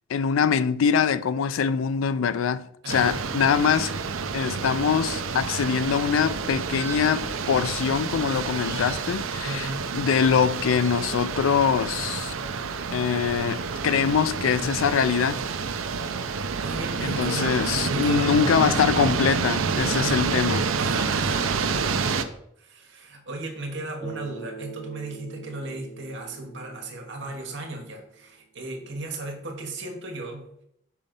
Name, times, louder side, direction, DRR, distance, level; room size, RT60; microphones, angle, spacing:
voice 1, 0.1-3.9 4.3-9.7 9.9-12.3 12.9-15.4 17.0-20.7, left 7 dB, 80° left, 0.4 m, -23 dB
voice 2, 2.8-3.2 9.4-9.9 16.6-17.6 17.9-18.8 19.9-20.4 20.8-30.6, right 2 dB, 60° right, 1.4 m, -36 dB
sound 1, 2.9-22.2, right 5 dB, 80° right, 0.5 m, -28 dB
sound 2, 6.6-7.4 8.4-9.2, right 3 dB, 10° right, 1.5 m, -43 dB
Bass guitar, 24.0-28.2, right 4 dB, 20° left, 1.4 m, -43 dB
5.6 x 3.9 x 5.2 m
head